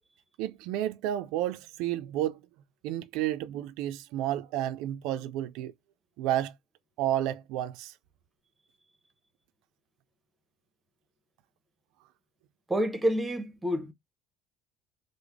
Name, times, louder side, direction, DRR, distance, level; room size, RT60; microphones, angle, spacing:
voice 1, 0.4-2.4 2.8-5.7 6.2-6.5 7.0-7.9, right 12 dB, 85° right, 0.3 m, -31 dB
voice 2, 12.7-13.9, equal, 10° right, 0.7 m, -28 dB
3.3 x 2.0 x 3.3 m
cardioid pair, 150°, 0 cm